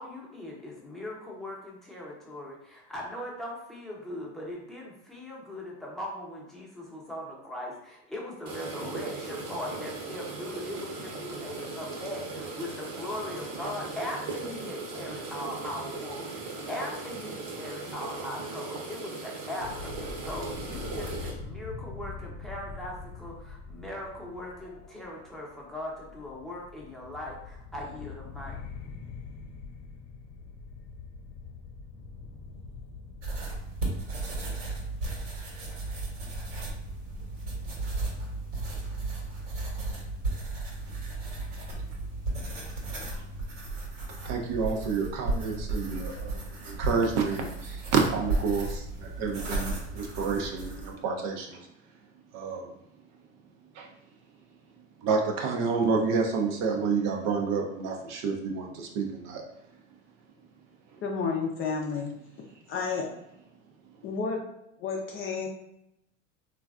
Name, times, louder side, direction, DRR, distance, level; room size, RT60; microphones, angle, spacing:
voice 1, 0.0-28.6, left 1 dB, ahead, -4 dB, 0.7 m, -39 dB
sound 1, 8.5-21.3, right 3 dB, 65° right, 0.9 m, -38 dB
sound 2, 19.6-33.3, left 4 dB, 80° left, 0.8 m, -43 dB
sound 3, 33.2-50.9, right 2 dB, 80° right, 1.2 m, -34 dB
voice 2, 44.2-51.7 52.3-52.7 53.7-53.9 55.0-59.4, right 5 dB, 45° right, 2 dB, 0.5 m, -29 dB
voice 3, 61.0-62.1 62.7-63.1 64.0-64.4 64.8-65.5, left 5 dB, 35° left, 0 dB, 0.5 m, -31 dB
3.1 x 2.3 x 2.3 m, 0.83 s
supercardioid pair, 105°, 37 cm